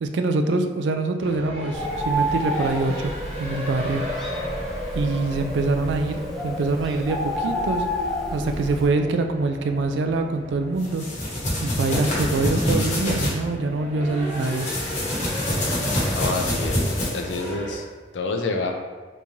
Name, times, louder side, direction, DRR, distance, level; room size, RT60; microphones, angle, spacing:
voice 1, 0.0-3.1 3.4-4.0 5.0-7.9 8.3-11.1 11.6-14.7, right 3 dB, 70° right, 6 dB, 0.3 m, -24 dB
sound 1, 1.2-17.8, equal, 30° right, 1.0 m, -35 dB
Bird, 1.7-8.9, equal, ahead, 0.4 m, -30 dB
sound 2, 10.8-13.3 14.3-17.5, left 1 dB, 40° left, 0.9 m, -25 dB
voice 2, 16.1-17.8 18.1-18.7, left 3 dB, 75° left, 3 dB, 0.4 m, -28 dB
3.6 x 3.0 x 2.6 m, 1.3 s
head